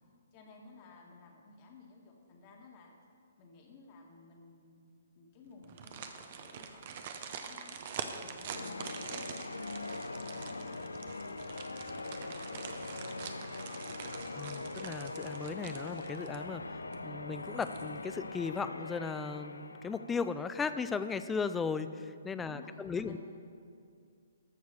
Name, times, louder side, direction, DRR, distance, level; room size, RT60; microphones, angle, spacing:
voice 1, 0.3-2.9 3.4-4.8 5.2-7.8 8.2-9.7 10.1-13.5 13.9-14.0 22.3-23.2, left 3 dB, 35° left, 0 dB, 1.8 m, -56 dB
sound 1, 5.6-16.6 16.9-17.0 17.4-18.1 18.5-18.6, right 6 dB, 45° right, 0.8 m, -45 dB
Church bell, 8.5-20.8, left 3 dB, 75° left, 0.4 m, -42 dB
voice 2, 14.4-23.2, left 5 dB, 10° left, 11 dB, 0.4 m, -36 dB
13.5 x 4.7 x 6.8 m, 2.2 s
figure-of-eight pair, 130°, 0 cm